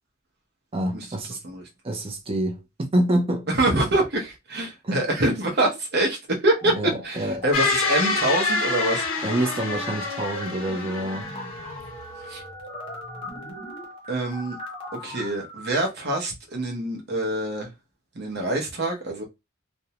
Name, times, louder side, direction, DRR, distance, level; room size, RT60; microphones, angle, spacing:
voice 1, 0.7-1.4 1.8-2.6 2.9-3.5 4.8-5.0 6.8-7.4 9.2-11.3, right 1 dB, 30° right, 0.6 m, -26 dB
voice 2, 3.5-9.1 12.2-12.4 14.1-14.6 15.0-17.7 18.1-19.2, right 1 dB, 55° right, 0.8 m, -25 dB
sound 1, 6.5-7.5 7.8-15.8, left 1 dB, 30° left, 0.7 m, -40 dB
sound 2, 7.5-11.9, left 3 dB, 85° left, 0.7 m, -27 dB
2.6 x 2.1 x 2.8 m
head